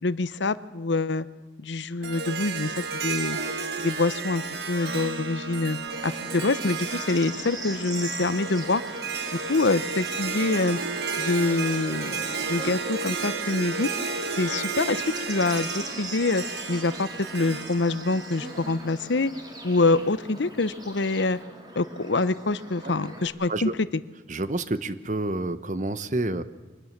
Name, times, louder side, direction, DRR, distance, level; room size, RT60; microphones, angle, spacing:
voice 1, 0.0-1.3 1.6-3.4 3.8-8.8 9.5-10.8 11.2-13.9 14.3-21.4 21.7-24.0, left 3 dB, 85° left, 15 dB, 0.9 m, -26 dB
Harp, 2.0-19.3, right 4 dB, 65° right, 1.9 m, -33 dB
Bird / Insect, 5.9-23.3, right 1 dB, 25° right, 3.3 m, -41 dB
voice 2, 24.3-26.4, right 2 dB, 45° right, 13 dB, 1.1 m, -28 dB
24.5 x 20.5 x 7.4 m, 1.3 s
head